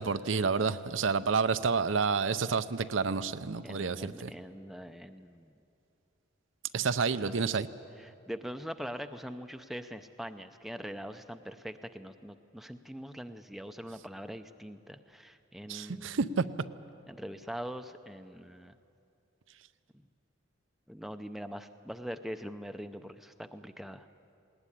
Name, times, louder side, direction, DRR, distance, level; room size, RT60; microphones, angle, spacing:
voice 1, 0.0-4.3 6.7-7.7 15.7-16.4, right 5 dB, 70° right, 12 dB, 0.6 m, -29 dB
voice 2, 3.6-5.5 7.2-7.6 8.0-16.4 17.1-18.7 20.9-24.1, equal, ahead, 8 dB, 0.5 m, -43 dB
19.0 x 19.0 x 9.9 m, 2.6 s
head